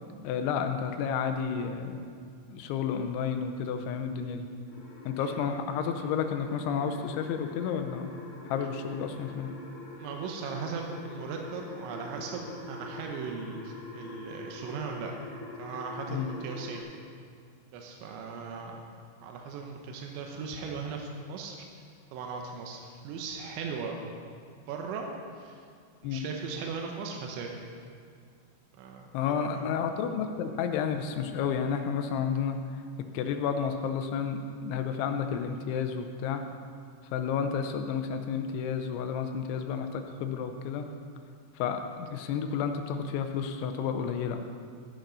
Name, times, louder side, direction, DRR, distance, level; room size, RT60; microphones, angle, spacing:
voice 1, 0.2-2.0 2.5-4.5 5.1-8.1 8.4-9.6 16.1-16.3 26.0-26.2 29.1-32.8 33.1-36.4 37.0-40.9 41.6-44.4, left 7 dB, 90° left, 7 dB, 3.2 m, -31 dB
sound 1, 4.7-16.8, left 2 dB, 65° left, 4.0 m, -45 dB
voice 2, 10.0-15.1 15.6-16.9 17.7-18.8 19.2-21.6 22.1-24.0 24.7-25.1 25.4-25.6 26.0-27.5 28.8-29.1 29.4-29.6, right 5 dB, 85° right, 1 dB, 3.3 m, -38 dB
14.5 x 10.5 x 4.0 m, 2.2 s
omnidirectional pair, 5.2 m